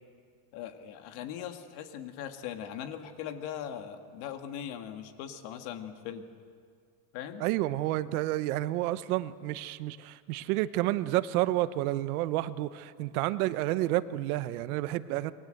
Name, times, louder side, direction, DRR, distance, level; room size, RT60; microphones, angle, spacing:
voice 1, 0.5-6.3 7.1-7.4, left 9 dB, 55° left, 7 dB, 2.1 m, -40 dB
voice 2, 7.4-15.3, right 16 dB, 75° right, 14 dB, 1.1 m, -30 dB
28.0 x 22.5 x 7.9 m, 2.2 s
cardioid pair, 160°, 44 cm